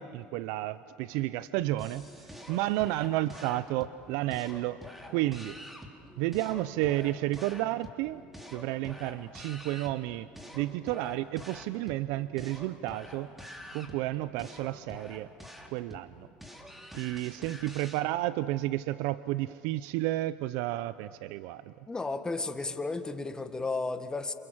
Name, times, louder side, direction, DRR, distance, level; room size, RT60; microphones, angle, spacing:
voice 1, 0.0-4.8 5.1-5.5 6.2-8.2 8.5-10.3 10.5-13.3 13.7-15.3 15.7-16.3 16.9-21.7, right 16 dB, 70° right, 15 dB, 0.6 m, -31 dB
sound 1, 1.8-18.0, equal, 5° right, 3.4 m, -47 dB
voice 2, 21.9-24.3, left 3 dB, 15° left, 8 dB, 1.8 m, -33 dB
28.0 x 28.0 x 7.4 m, 2.3 s
supercardioid pair, 95°, 5 cm